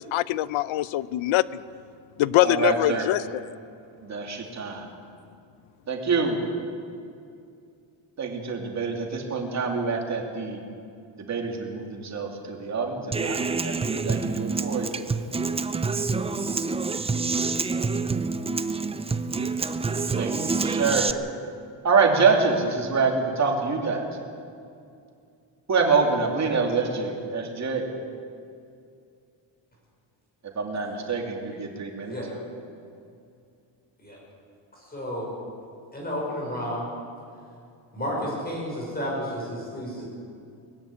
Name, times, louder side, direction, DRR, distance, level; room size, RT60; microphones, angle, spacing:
voice 1, 0.0-1.6 2.2-3.5, left 15 dB, 85° left, 18 dB, 0.7 m, -23 dB
voice 2, 2.4-3.1 4.0-4.9 5.9-6.5 8.2-10.6 11.2-15.0 20.2-21.2 21.8-24.0 25.7-27.9 30.5-32.1, right 4 dB, 35° right, 2 dB, 2.9 m, -26 dB
Human voice / Acoustic guitar, 13.1-21.1, right 4 dB, 15° right, 0.4 m, -27 dB
voice 3, 34.7-35.3 35.9-36.9 37.9-40.0, equal, 20° left, -3 dB, 5.9 m, -31 dB
21.0 x 15.0 x 9.9 m, 2.4 s
cardioid pair, 175°, 47 cm